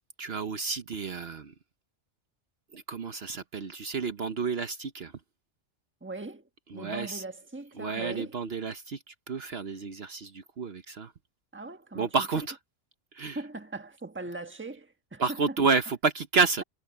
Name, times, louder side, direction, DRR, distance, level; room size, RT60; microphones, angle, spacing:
voice 1, 0.2-1.5 2.7-5.1 6.7-7.2 7.8-11.1 11.9-12.6 13.1-13.4 15.2-16.6, right 5 dB, 60° right, 1.2 m, -30 dB
voice 2, 6.0-6.4 6.7-8.4 11.5-12.1 13.3-15.4, right 2 dB, 10° right, 1.4 m, -40 dB
omnidirectional pair, 1.2 m